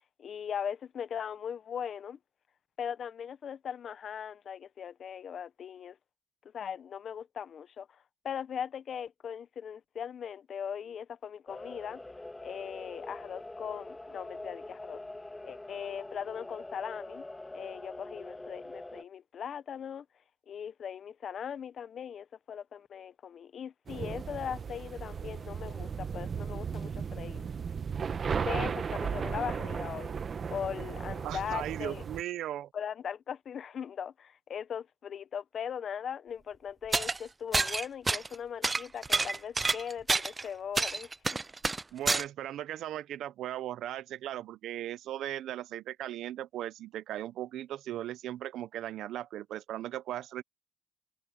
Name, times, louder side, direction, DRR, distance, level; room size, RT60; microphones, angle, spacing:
voice 1, 0.2-2.2 2.8-6.0 6.5-8.0 8.2-12.0 12.4-15.0 15.4-17.2 17.5-20.1 20.5-27.5 28.4-30.1 30.5-32.0 32.7-41.4, left 8 dB, 55° left, 0.8 m, -39 dB
sound 1, 11.5-19.0, left 2 dB, 15° left, 2.9 m, -44 dB
sound 2, 23.9-32.2, right 6 dB, 45° right, 1.1 m, -35 dB
voice 2, 31.2-32.7 41.9-50.4, right 12 dB, 80° right, 0.7 m, -37 dB
sound 3, 36.9-37.2 37.5-38.4 38.6-40.4 40.8-42.2, right 3 dB, 25° right, 0.4 m, -28 dB
cardioid pair, 90°, 0 cm